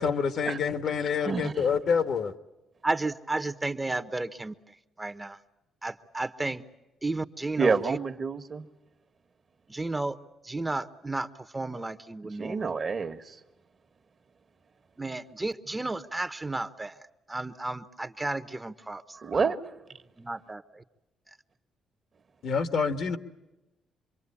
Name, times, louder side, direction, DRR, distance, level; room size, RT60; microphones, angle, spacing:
voice 1, 0.0-2.3 22.4-23.2, left 6 dB, 65° left, 1.5 m, -27 dB
voice 2, 1.2-1.7 7.6-8.7 12.4-13.4 19.1-19.6, right 5 dB, 45° right, 1.5 m, -28 dB
voice 3, 2.8-4.5 5.0-5.4 5.8-6.6 7.0-8.0 9.7-10.2 10.4-11.3 11.5-12.7 15.0-16.9 17.3-19.0 19.3-19.5 20.2-20.8, right 2 dB, 15° right, 1.0 m, -33 dB
26.5 x 23.0 x 8.5 m
cardioid pair, 90°, 0 cm